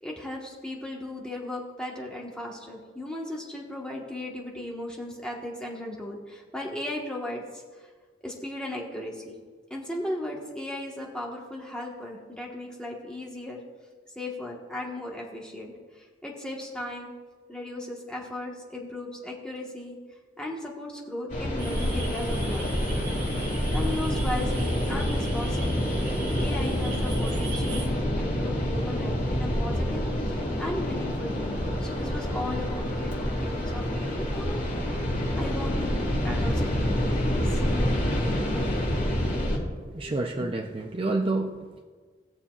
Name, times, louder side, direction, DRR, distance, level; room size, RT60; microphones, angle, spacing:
voice 1, 0.0-7.9 8.2-9.4 9.7-13.6 14.1-17.1 17.5-20.0 20.4-22.7 23.7-25.9 26.3-34.7 35.4-37.6, left 1 dB, 5° left, -3 dB, 1.3 m, -36 dB
sound 1, 21.3-39.6, equal, 40° left, 3.2 m, -27 dB
sound 2, 21.6-27.9, right 3 dB, 70° right, 1.9 m, -41 dB
voice 2, 39.7-41.8, right 2 dB, 30° right, 2 dB, 0.5 m, -29 dB
20.0 x 7.0 x 2.4 m, 1.5 s
head